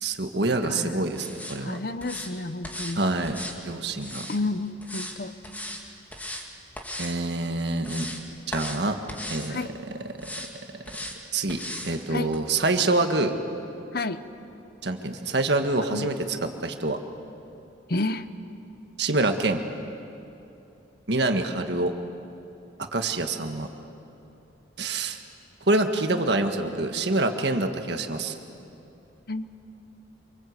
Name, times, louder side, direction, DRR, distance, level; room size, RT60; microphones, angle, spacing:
voice 1, 0.0-1.8 3.0-4.3 7.0-8.1 8.5-9.0 9.3-9.6 11.3-13.3 14.8-16.1 16.6-17.0 19.0-19.6 21.1-21.9 22.9-23.7 24.8-25.2 25.7-28.3, right 2 dB, 60° right, 6 dB, 1.7 m, -26 dB
voice 2, 0.6-1.0 1.6-3.0 4.3-5.3 9.5-9.7 12.1-12.3 13.9-14.2 15.9-16.1 17.9-18.3 25.9-26.0 29.3-29.5, left 2 dB, 55° left, 12 dB, 1.0 m, -30 dB
sound 1, 1.1-1.6 2.0-2.3 2.6-3.0 3.2-4.4 4.8-5.2 5.4-5.8 6.1-6.5 6.8-7.2 7.6-8.2 8.5-8.8 9.1-9.5 10.2-10.5 10.9-11.2 11.5-11.9 12.3-12.4, left 1 dB, 10° left, 2.0 m, -37 dB
26.5 x 25.0 x 8.1 m, 2.9 s
head